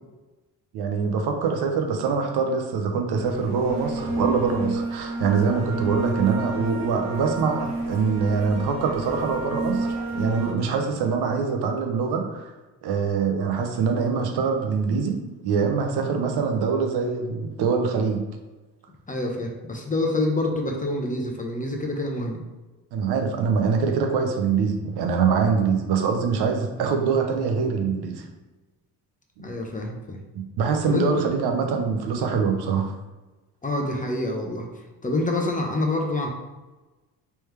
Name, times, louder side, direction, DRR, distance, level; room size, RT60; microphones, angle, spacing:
voice 1, 0.7-12.5 12.8-18.2 22.9-28.2 30.3-33.0, right 5 dB, 65° right, 4 dB, 0.8 m, -24 dB
sound 1, 3.1-10.5, right 2 dB, 85° right, 1.0 m, -30 dB
voice 2, 19.1-22.4 29.4-30.2 30.8-31.3 33.6-34.7 35.0-36.3, left 2 dB, 20° left, 1 dB, 0.7 m, -26 dB
3.4 x 3.1 x 3.2 m, 1.1 s
supercardioid pair, 75°, 43 cm